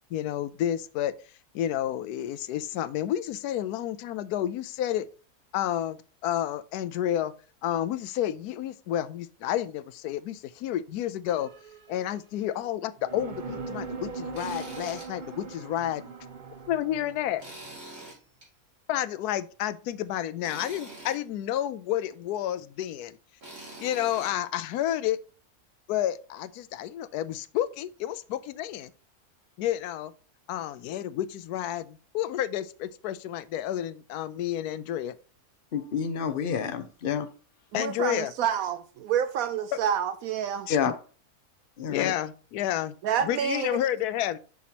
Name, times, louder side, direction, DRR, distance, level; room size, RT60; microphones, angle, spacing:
voice 1, 0.1-1.1 1.5-5.1 5.5-7.3 7.6-11.5 11.9-16.1 16.7-17.4 18.9-23.2 23.8-25.2 25.9-28.9 29.6-30.1 30.5-35.1 37.7-38.3 40.7-40.8 41.9-42.9 43.2-44.4, left 11 dB, 90° left, 1.1 m, -30 dB
sound 1, 11.3-12.4 13.0-17.7, right 4 dB, 40° right, 0.9 m, -40 dB
Tools, 14.3-15.1 15.5-15.6 17.4-18.5 20.4-21.2 23.4-24.3, right 2 dB, 55° right, 3.3 m, -44 dB
voice 2, 35.7-37.3 40.7-40.9 41.8-42.1, left 7 dB, 45° left, 0.8 m, -28 dB
voice 3, 37.7-40.7 43.0-43.8, right 8 dB, 75° right, 1.0 m, -28 dB
7.0 x 6.2 x 2.9 m
omnidirectional pair, 1.6 m